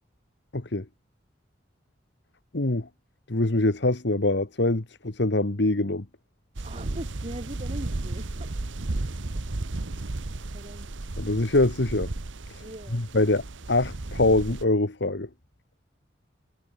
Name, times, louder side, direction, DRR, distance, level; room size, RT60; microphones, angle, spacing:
voice 1, 0.5-0.8 2.5-2.9 3.3-6.0 11.2-12.1 12.5-12.6 12.9-13.4 13.7-15.3, left 2 dB, 65° left, 1.5 m, -24 dB
voice 2, 6.6-8.6 10.5-10.9 12.6-13.3, right 1 dB, 35° right, 3.3 m, -41 dB
sound 1, 6.6-14.6, right 2 dB, 85° right, 1.1 m, -34 dB
head